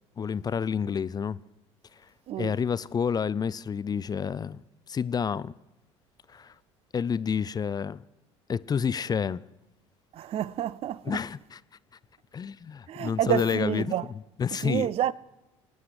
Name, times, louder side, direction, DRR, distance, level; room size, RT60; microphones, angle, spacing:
voice 1, 0.2-1.4 2.4-4.6 4.9-5.5 6.3-6.5 6.9-8.0 8.5-9.4 11.0-11.6 12.3-14.9, left 6 dB, 25° left, 0.4 m, -29 dB
voice 2, 10.1-11.0 12.9-14.1 14.6-15.1, right 11 dB, 40° right, 0.4 m, -28 dB
24.5 x 9.6 x 5.0 m
figure-of-eight pair, 60°, 16 cm